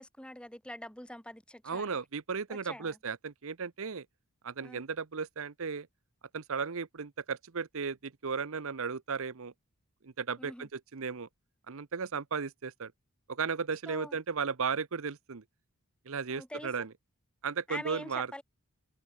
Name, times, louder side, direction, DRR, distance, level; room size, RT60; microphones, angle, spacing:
voice 1, 0.0-2.0 2.5-3.0 4.6-4.8 10.4-10.7 13.9-14.2 16.3-16.7 17.7-18.4, left 1 dB, 5° left, 5.2 m, -44 dB
voice 2, 1.6-4.1 4.4-5.9 6.3-9.5 10.0-11.3 11.7-12.9 13.3-15.4 16.1-16.9 17.4-18.3, right 5 dB, 65° right, 0.8 m, -35 dB
head